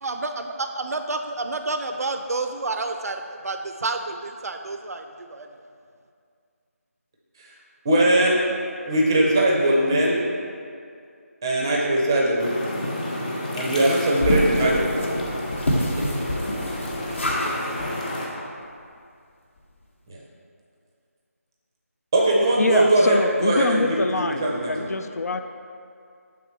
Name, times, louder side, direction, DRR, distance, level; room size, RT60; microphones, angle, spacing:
voice 1, 0.0-5.5, right 3 dB, 75° right, 6 dB, 0.4 m, -29 dB
voice 2, 7.8-8.5 8.9-10.3 11.4-12.6 13.5-15.0 16.2-16.3 20.1-20.2 22.1-23.2 23.4-24.0 24.4-24.9, right 1 dB, 15° right, -3 dB, 0.5 m, -20 dB
sound 1, 12.4-18.3, left 1 dB, 30° left, 0.8 m, -31 dB
sound 2, 14.2-17.5 17.8-17.9 18.4-18.5 18.7-18.8, left 1 dB, 50° left, 0.9 m, -26 dB
voice 3, 22.6-25.4, left 2 dB, 80° left, 7 dB, 0.4 m, -24 dB
7.0 x 3.6 x 4.5 m, 2.3 s
figure-of-eight pair, 170°, 8 cm